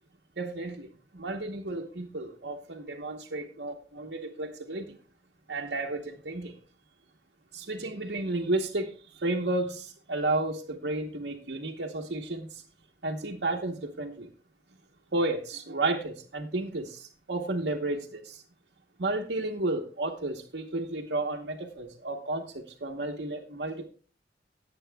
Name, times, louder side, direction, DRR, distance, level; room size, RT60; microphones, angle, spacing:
voice 1, 0.4-5.0 5.5-6.6 7.5-12.6 13.0-14.3 15.1-18.4 19.0-23.9, right 2 dB, 75° right, -1 dB, 1.1 m, -32 dB
18.0 x 8.4 x 2.3 m, 0.40 s
head